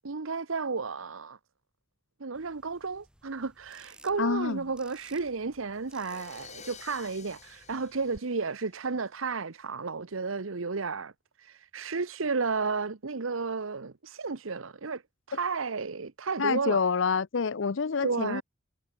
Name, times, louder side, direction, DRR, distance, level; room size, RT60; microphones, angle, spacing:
voice 1, 0.0-1.4 2.2-11.1 11.4-15.0 15.3-16.8 18.0-18.4, right 4 dB, 80° right, 1.0 m, -32 dB
sound 1, 2.3-8.2, right 1 dB, 5° right, 5.9 m, -57 dB
voice 2, 4.2-4.6 16.4-18.4, left 5 dB, 65° left, 0.6 m, -27 dB
sound 2, 5.7-9.0, left 6 dB, 35° left, 6.2 m, -51 dB
head